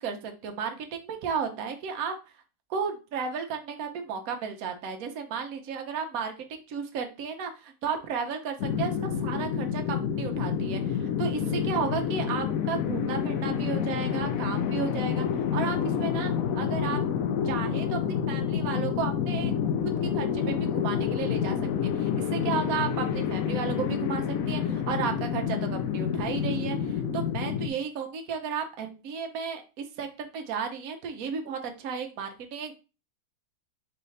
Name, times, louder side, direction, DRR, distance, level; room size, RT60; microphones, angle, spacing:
voice 1, 0.0-2.1 2.7-15.2 15.5-17.0 17.4-19.5 20.0-32.7, right 6 dB, 65° right, 4 dB, 1.2 m, -34 dB
sound 1, 8.6-27.7, left 8 dB, 70° left, 0.9 m, -28 dB
4.5 x 3.4 x 3.2 m, 0.31 s
omnidirectional pair, 1.7 m